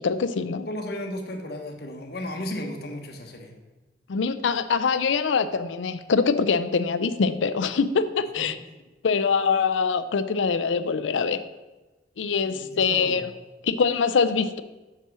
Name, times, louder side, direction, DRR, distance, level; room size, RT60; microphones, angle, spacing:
voice 1, 0.0-0.7 4.1-8.6 9.0-11.4 12.2-13.3 13.6-14.6, left 5 dB, 90° left, 12 dB, 0.5 m, -24 dB
voice 2, 0.7-3.5 8.4-8.5 12.4-13.2, left 1 dB, 55° left, 3 dB, 1.2 m, -34 dB
5.9 x 5.5 x 6.2 m, 1.2 s
head